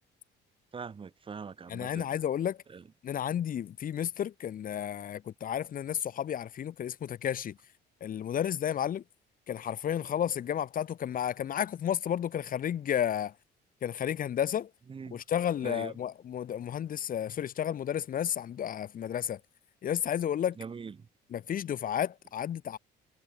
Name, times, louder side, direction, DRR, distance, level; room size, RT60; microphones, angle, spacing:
voice 1, 0.7-2.1 2.7-2.8 14.9-15.2 15.6-16.0 20.6-21.1, right 5 dB, 30° right, 6.1 m, -42 dB
voice 2, 1.7-2.6 3.0-7.6 8.0-9.0 9.5-13.3 13.8-14.7 15.1-19.4 19.8-20.6 21.3-22.8, left 9 dB, 50° left, 4.7 m, -32 dB
cardioid pair, 140°, 19 cm